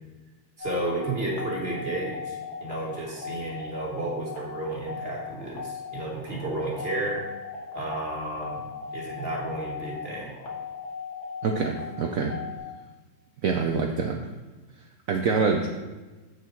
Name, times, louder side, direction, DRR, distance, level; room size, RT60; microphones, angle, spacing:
sound 1, 0.6-12.6, left 5 dB, 80° left, 2.1 m, -38 dB
voice 1, 0.6-7.3 7.7-10.3, right 2 dB, 30° right, -2 dB, 1.7 m, -32 dB
voice 2, 11.4-12.3 13.4-14.2 15.1-15.7, right 5 dB, 75° right, 2 dB, 0.7 m, -25 dB
7.9 x 6.6 x 4.5 m, 1.2 s
omnidirectional pair, 2.2 m